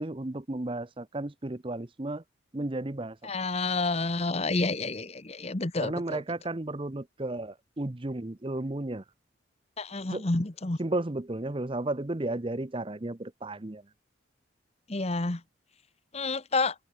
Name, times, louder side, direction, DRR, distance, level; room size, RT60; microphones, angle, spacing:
voice 1, 0.0-2.2 2.5-3.2 5.8-9.0 10.1-10.3 10.8-13.8, right 2 dB, 25° right, 0.7 m, -33 dB
voice 2, 3.2-6.2 9.8-10.8 14.9-15.4 16.1-16.7, left 3 dB, 30° left, 1.0 m, -29 dB
open air
head